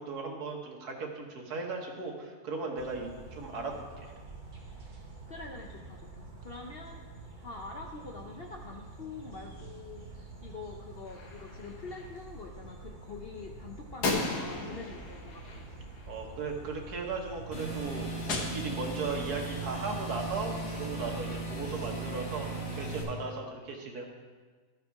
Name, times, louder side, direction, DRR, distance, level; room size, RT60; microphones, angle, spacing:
voice 1, 0.0-4.1 16.1-24.1, right 4 dB, 70° right, 1 dB, 1.7 m, -37 dB
sound 1, 2.8-21.8, right 3 dB, 35° right, 1.2 m, -47 dB
voice 2, 5.3-7.0 7.4-15.7, left 4 dB, 65° left, 1 dB, 0.6 m, -45 dB
Gunshot gunfire, 11.1-12.1 14.0-16.4 18.3-19.3, left 3 dB, 80° left, 1.7 m, -36 dB
sound 2, 17.5-23.0, right 2 dB, 40° left, 1.8 m, -37 dB
13.0 x 4.8 x 4.6 m, 1.4 s
omnidirectional pair, 1.7 m